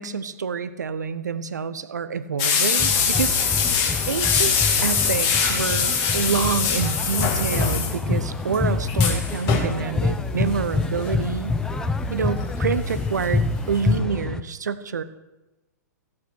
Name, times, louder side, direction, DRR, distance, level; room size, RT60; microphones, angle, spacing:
voice 1, 0.0-3.3 4.1-11.6 12.1-15.0, right 6 dB, 70° right, 13 dB, 0.9 m, -27 dB
sound 1, 2.4-8.2 8.5-8.6 8.9-9.7 10.8-11.1 11.7-12.9 13.2-13.3 13.7-13.8, left 6 dB, 35° left, 2.5 m, -23 dB
sound 2, 2.8-14.4, left 3 dB, 5° left, 0.6 m, -26 dB
15.5 x 8.6 x 6.4 m, 1.0 s
figure-of-eight pair, 115°, 10 cm